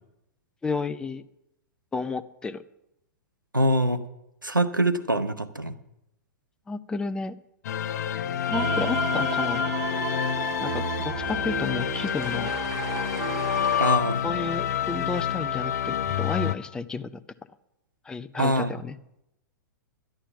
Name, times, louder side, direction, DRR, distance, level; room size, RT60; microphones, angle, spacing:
voice 1, 0.6-1.2 1.9-2.6 6.7-7.4 8.4-9.8 10.6-12.5 14.2-17.2 18.0-19.0, left 4 dB, 10° left, 11 dB, 0.5 m, -32 dB
voice 2, 3.5-4.0 4.4-5.7 13.8-14.2 18.4-18.7, right 1 dB, 90° right, 9 dB, 0.9 m, -24 dB
sound 1, 7.6-16.6, left 9 dB, 55° left, 0.8 m, -28 dB
sound 2, 8.5-13.9, right 8 dB, 35° right, 1.7 m, -33 dB
11.5 x 11.5 x 5.8 m, 0.84 s
figure-of-eight pair, 105°, 10 cm